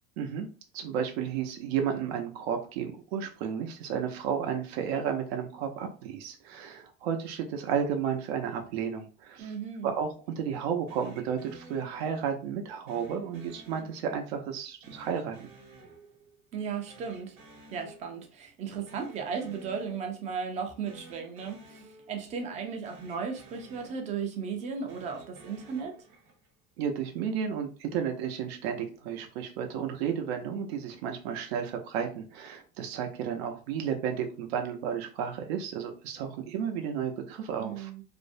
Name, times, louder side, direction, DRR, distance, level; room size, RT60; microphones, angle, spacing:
voice 1, 0.2-0.5 0.7-9.5 9.8-15.5 26.8-37.9, right 7 dB, 80° right, 0.6 m, -32 dB
voice 2, 9.4-9.9 16.5-17.4 17.7-25.9 37.6-38.0, right 6 dB, 25° right, 0.4 m, -36 dB
sound 1, 10.9-12.4 12.9-14.4 14.8-16.6 16.9-18.4 18.7-20.4 20.8-22.6 22.8-24.4 24.8-26.6, right 2 dB, 50° right, 1.0 m, -53 dB
2.5 x 2.0 x 2.5 m
supercardioid pair, 160°, 31 cm